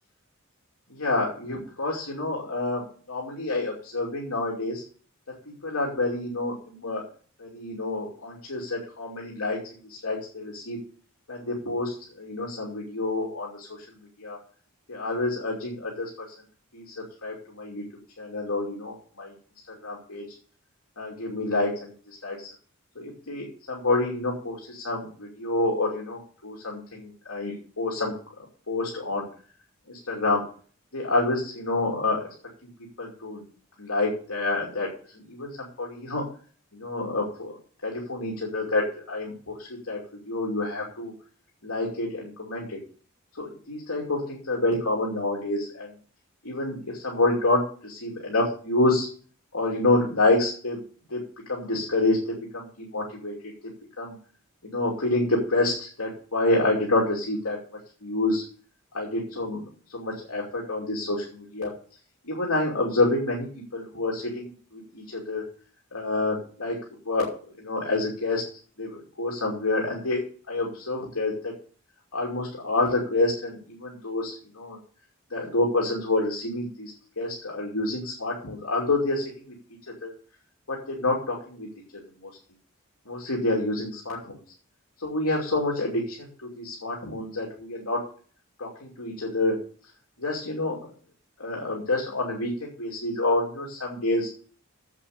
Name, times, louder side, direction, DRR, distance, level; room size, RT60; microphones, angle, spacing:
voice 1, 0.9-4.8 5.5-7.1 7.4-9.6 9.8-10.8 11.3-13.9 14.2-14.4 14.9-16.3 16.7-17.8 18.2-19.3 19.7-20.2 21.0-22.5 22.9-28.1 28.7-29.3 29.9-30.4 30.9-32.3 33.0-33.4 33.8-34.9 35.3-36.2 36.7-37.6 37.8-40.0 40.3-41.1 41.6-42.8 43.4-45.9 46.4-49.1 49.5-50.8 51.1-51.2 51.5-53.3 54.0-54.1 54.6-57.6 58.0-58.4 58.9-59.6 59.9-61.7 62.2-65.4 65.9-66.8 67.0-67.3 67.6-68.4 68.8-71.5 72.1-74.8 75.3-79.5 80.0-80.1 80.7-81.7 81.9-82.3 83.1-84.4 85.0-88.0 88.6-89.6 90.2-90.8 91.4-94.3, left 2 dB, 75° left, -2 dB, 2.9 m, -28 dB
8.3 x 7.5 x 6.7 m, 0.43 s
head